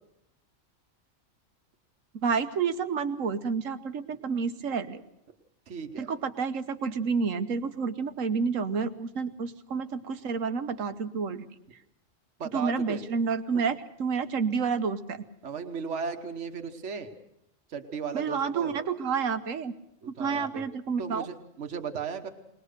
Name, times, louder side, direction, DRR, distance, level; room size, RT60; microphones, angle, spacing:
voice 1, 2.2-5.0 6.0-11.5 12.5-15.2 18.1-19.7 20.2-21.3, right 5 dB, 85° right, 10 dB, 1.5 m, -29 dB
voice 2, 5.7-6.1 12.4-13.0 13.5-13.7 15.4-17.1 17.7-18.7 20.0-20.6 21.0-22.3, right 6 dB, 65° right, 6 dB, 1.6 m, -36 dB
21.0 x 20.0 x 6.6 m, 0.83 s
omnidirectional pair, 1.3 m